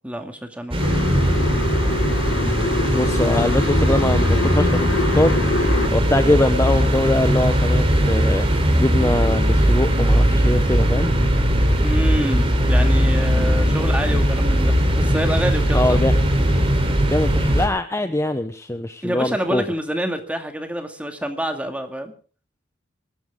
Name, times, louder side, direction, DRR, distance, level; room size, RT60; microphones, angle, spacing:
voice 1, 0.0-1.1 11.8-16.0 19.0-22.1, right 1 dB, 5° right, 5 dB, 2.2 m, -27 dB
sound 1, 0.7-17.7, equal, 30° right, 3.6 m, -19 dB
sound 2, 0.8-5.9, left 2 dB, 90° left, 1.6 m, -25 dB
voice 2, 2.9-4.9 5.1-5.4 5.6-11.2 15.7-16.1 17.1-19.6, left 1 dB, 15° left, 9 dB, 0.8 m, -22 dB
sound 3, 9.6-14.3, equal, 50° right, 2.0 m, -34 dB
23.0 x 13.0 x 3.7 m, 0.39 s
head